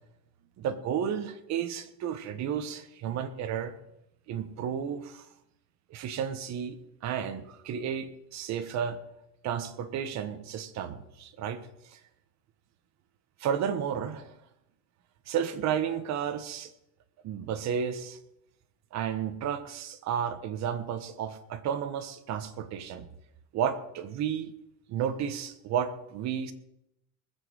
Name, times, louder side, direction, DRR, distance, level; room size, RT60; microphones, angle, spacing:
voice 1, 0.6-3.7 4.3-5.3 5.9-6.8 7.0-9.0 9.4-11.6 11.9-12.0 13.4-14.4 15.3-16.7 17.2-18.2 18.9-23.1 23.5-24.5 24.9-26.5, right 8 dB, 35° right, 9 dB, 1.3 m, -32 dB
20.5 x 7.6 x 6.3 m, 0.82 s
supercardioid pair, 155°, 48 cm